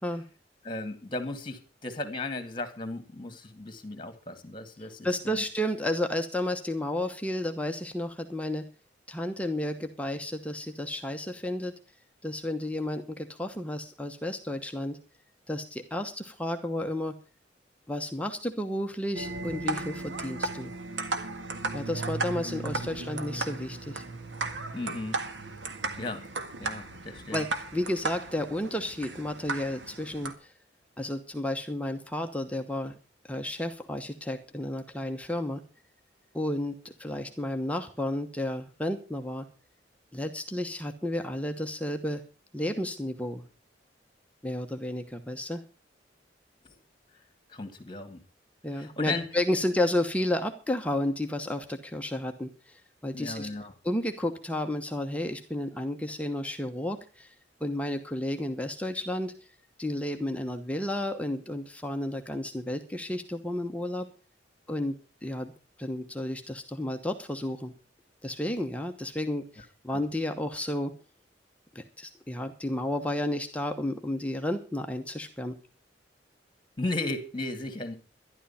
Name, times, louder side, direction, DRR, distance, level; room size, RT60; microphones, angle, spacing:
voice 1, 0.6-5.4 24.7-25.2 26.0-26.3 26.6-27.4 46.6-46.7 47.5-48.2 48.7-49.3 53.1-53.7 69.9-70.0 76.8-77.9, left 2 dB, 25° left, 2.1 m, -35 dB
voice 2, 5.0-8.6 9.1-11.8 12.2-15.0 15.5-17.2 17.9-20.7 21.7-24.0 27.3-30.5 31.0-32.9 33.3-35.6 36.3-39.5 40.1-42.2 42.5-43.4 44.4-45.6 48.6-53.5 53.8-57.3 57.6-59.3 59.8-64.1 64.7-65.0 65.2-65.5 65.8-67.7 68.2-70.9 71.7-75.5, left 1 dB, 10° left, 1.0 m, -32 dB
sound 1, 19.1-30.3, right 3 dB, 85° right, 1.7 m, -35 dB
12.5 x 11.5 x 5.7 m
head